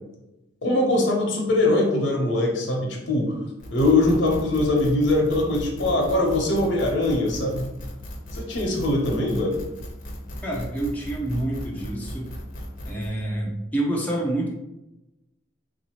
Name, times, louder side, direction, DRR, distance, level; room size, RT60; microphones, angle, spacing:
voice 1, 0.6-3.3 3.7-7.7 8.3-9.6, left 2 dB, 75° left, 0 dB, 0.9 m, -22 dB
sound 1, 3.6-13.1, equal, 45° left, 0.7 m, -37 dB
voice 2, 10.4-12.3 12.8-14.5, right 1 dB, 10° left, -4 dB, 0.5 m, -27 dB
3.8 x 2.7 x 3.0 m, 0.94 s
head